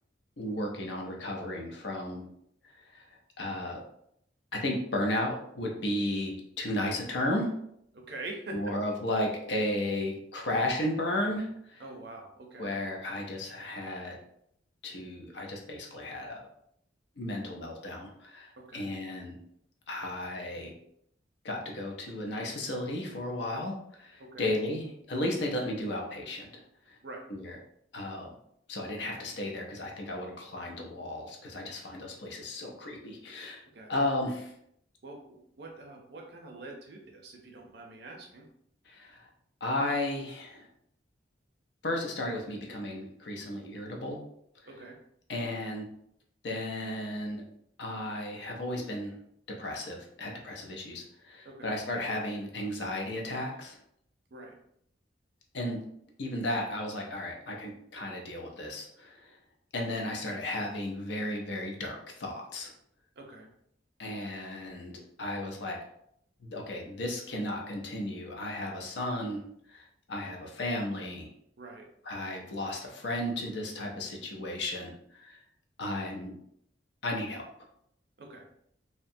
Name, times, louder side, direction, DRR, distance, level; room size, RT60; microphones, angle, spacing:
voice 1, 0.4-2.2 2.6-3.1 3.4-3.8 4.5-7.5 8.5-11.8 12.6-14.2 14.8-16.4 17.2-19.4 19.9-20.7 21.4-26.6 26.9-27.0 27.3-27.6 27.9-28.3 28.7-33.6 33.9-34.5 38.9-39.3 39.6-40.7 41.8-44.2 45.3-45.8 46.4-47.4 47.8-49.2 49.5-53.8 55.5-55.8 56.2-59.4 59.7-62.7 64.0-64.9 65.2-65.8 66.4-69.4 69.7-71.3 72.1-75.4 75.8-76.3 77.0-77.4, left 1 dB, 65° left, 1 dB, 0.5 m, -34 dB
voice 2, 7.9-8.6 11.8-12.7 18.6-18.8 24.2-24.5 27.0-27.2 33.7-33.9 35.0-38.5 44.7-45.0 51.4-51.7 54.3-54.5 63.2-63.5 64.2-64.3 71.6-71.9 78.2-78.5, right 2 dB, 60° right, 1 dB, 0.5 m, -45 dB
2.7 x 2.1 x 2.6 m, 0.71 s
head